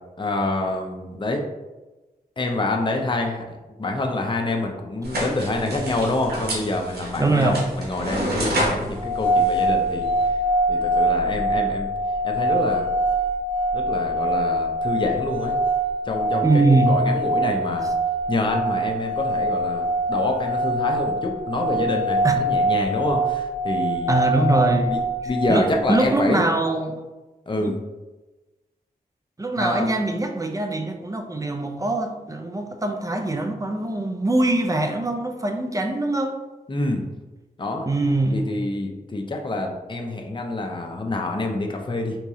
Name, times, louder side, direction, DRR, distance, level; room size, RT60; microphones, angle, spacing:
voice 1, 0.2-1.4 2.4-3.4 3.8-10.1 10.7-11.9 12.2-12.9 13.7-15.5 16.0-17.9 18.3-24.1 24.9-25.0 25.2-26.4 27.5-27.8 29.6-29.9 36.7-37.0 37.6-37.9 38.3-42.2, left 2 dB, 30° left, 2 dB, 0.5 m, -26 dB
sound 1, 5.0-10.3, right 1 dB, 80° right, 0.9 m, -29 dB
voice 2, 7.2-7.7 8.6-8.7 16.4-17.0 22.2-22.3 24.1-25.0 25.5-27.0 27.6-27.8 29.4-36.4 37.9-38.5, right 2 dB, 20° right, 5 dB, 0.5 m, -22 dB
sound 2, 8.9-26.1, right 1 dB, 55° right, 1.3 m, -24 dB
3.6 x 2.9 x 2.7 m, 1.1 s
cardioid pair, 60°, 16 cm